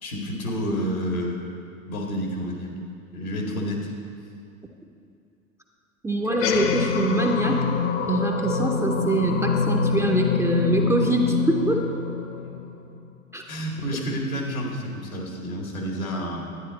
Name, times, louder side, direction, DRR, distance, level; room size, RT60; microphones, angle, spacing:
voice 1, 0.0-1.4 1.8-2.7 3.1-3.9 13.5-16.5, equal, 80° left, 0 dB, 2.2 m, -29 dB
voice 2, 6.0-7.6 8.1-11.8 13.3-13.4, right 2 dB, 5° right, 1 dB, 0.6 m, -24 dB
sound 1, 6.3-13.0, left 6 dB, 60° left, 1.1 m, -25 dB
11.0 x 9.7 x 4.2 m, 2.5 s
figure-of-eight pair, 90°, 41 cm